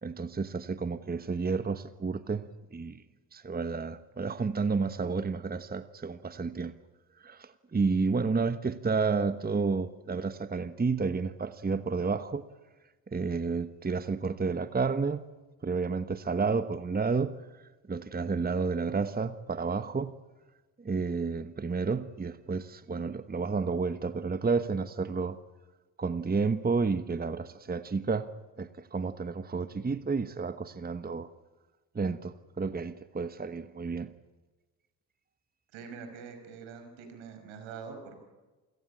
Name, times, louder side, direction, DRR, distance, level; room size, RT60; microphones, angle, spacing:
voice 1, 0.0-3.0 3.3-6.7 7.2-12.4 13.1-15.3 15.6-17.6 17.9-20.1 20.8-25.4 26.0-28.3 28.6-31.3 31.9-34.1, right 4 dB, 20° right, 12 dB, 1.2 m, -31 dB
voice 2, 35.7-38.2, right 5 dB, 75° right, 6 dB, 5.7 m, -44 dB
28.0 x 16.5 x 8.6 m, 1.2 s
hypercardioid pair, 60°, 47 cm